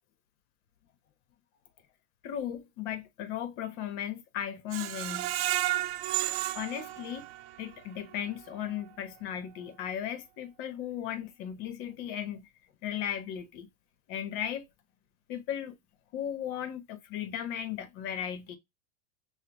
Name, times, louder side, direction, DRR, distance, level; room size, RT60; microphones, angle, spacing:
voice 1, 2.2-5.3 6.5-7.3 7.6-12.5 12.8-13.7 14.1-14.6 15.3-15.7 16.1-18.6, left 10 dB, 50° left, 1.1 m, -36 dB
Screech, 4.7-7.7 8.1-8.2 8.6-8.7, right 15 dB, 70° right, 0.5 m, -32 dB
5.8 x 2.2 x 2.9 m
supercardioid pair, 125°, 32 cm